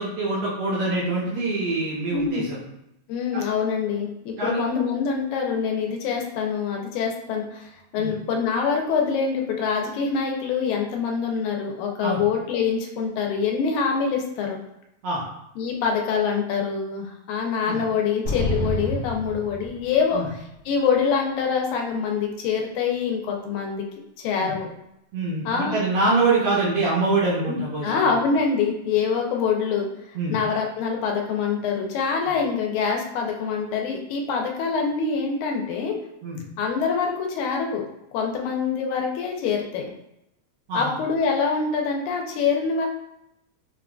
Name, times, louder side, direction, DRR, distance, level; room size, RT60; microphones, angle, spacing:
voice 1, 0.0-2.6 3.3-3.4 4.4-4.6 8.0-8.1 12.0-12.2 15.0-15.2 17.6-17.8 20.1-20.3 24.4-24.5 25.1-28.1 30.1-30.4 36.2-36.4 40.7-40.9, right 3 dB, 75° right, -6 dB, 1.3 m, -24 dB
voice 2, 2.1-2.4 3.1-14.6 15.6-20.2 20.7-23.9 24.2-24.7 25.5-25.8 27.4-29.9 30.3-36.0 36.6-37.9 38.1-39.9 40.7-42.9, left 5 dB, 85° left, 1 dB, 2.0 m, -25 dB
sound 1, 18.2-20.2, left 1 dB, 40° left, 0.9 m, -28 dB
5.5 x 2.4 x 2.3 m, 0.84 s
omnidirectional pair, 3.4 m